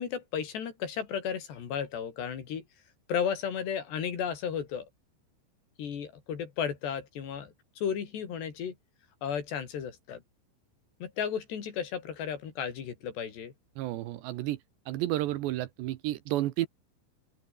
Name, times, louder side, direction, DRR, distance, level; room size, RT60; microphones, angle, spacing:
voice 1, 0.0-2.6 3.1-4.9 5.8-8.7 9.2-10.2 11.0-13.5, left 7 dB, 60° left, 5.3 m, -34 dB
voice 2, 13.8-14.6 14.9-16.7, right 15 dB, 75° right, 3.0 m, -31 dB
open air
omnidirectional pair, 5.5 m